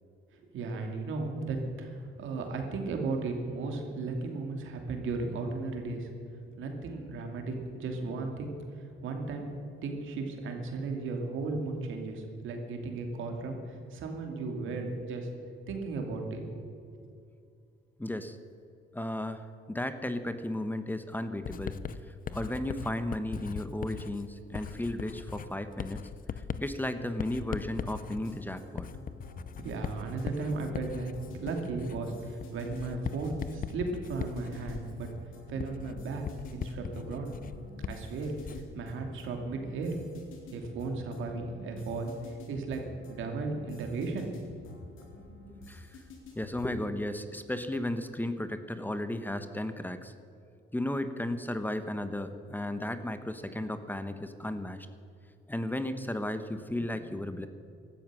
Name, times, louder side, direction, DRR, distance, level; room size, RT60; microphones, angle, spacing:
voice 1, 0.5-6.1 6.6-8.5 9.0-15.3 15.7-16.6 29.6-31.1 31.4-35.1 35.5-37.3 37.9-39.9 40.5-42.1 42.5-44.3 44.6-44.7, right 3 dB, 80° right, 3 dB, 2.7 m, -35 dB
voice 2, 18.0-18.3 19.0-19.4 19.7-21.7 22.3-26.0 26.6-28.9 46.4-50.1 50.7-54.8 55.5-57.5, left 1 dB, 10° left, 10 dB, 1.1 m, -34 dB
Writing, 21.5-38.8, left 7 dB, 45° left, 0.7 m, -40 dB
sound 1, 27.9-46.9, left 3 dB, 85° left, 3.9 m, -49 dB
16.0 x 13.0 x 6.3 m, 2.4 s
cardioid pair, 90°, 20 cm